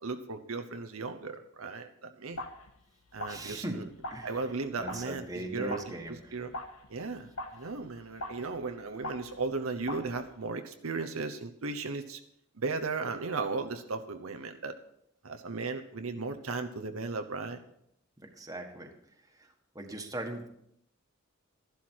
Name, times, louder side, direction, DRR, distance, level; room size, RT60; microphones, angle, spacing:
voice 1, 0.0-2.4 3.1-3.9 4.2-5.8 6.1-6.5 6.9-12.2 12.6-14.7 15.2-17.6, right 4 dB, 75° right, 7 dB, 0.9 m, -36 dB
sound 1, 2.3-2.8 3.1-9.5 9.8-10.3, left 1 dB, 90° left, 1.6 m, -43 dB
voice 2, 3.3-3.8 4.1-4.4 4.8-6.3 18.4-18.9 19.7-20.5, right 1 dB, 15° right, 3 dB, 1.6 m, -39 dB
13.0 x 11.5 x 4.6 m, 0.73 s
head